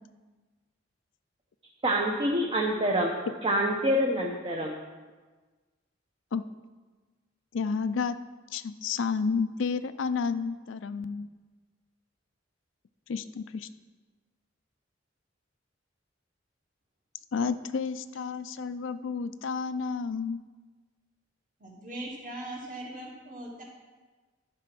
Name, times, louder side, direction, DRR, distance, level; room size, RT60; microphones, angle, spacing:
voice 1, 1.8-3.1 3.4-4.7, equal, 30° right, -1 dB, 0.8 m, -26 dB
voice 2, 7.5-8.2 8.5-11.3 13.1-13.7 17.3-20.4, left 5 dB, 80° left, 12 dB, 0.4 m, -31 dB
voice 3, 21.6-23.6, right 1 dB, 45° right, -3 dB, 2.2 m, -40 dB
11.5 x 4.9 x 6.0 m, 1.3 s
head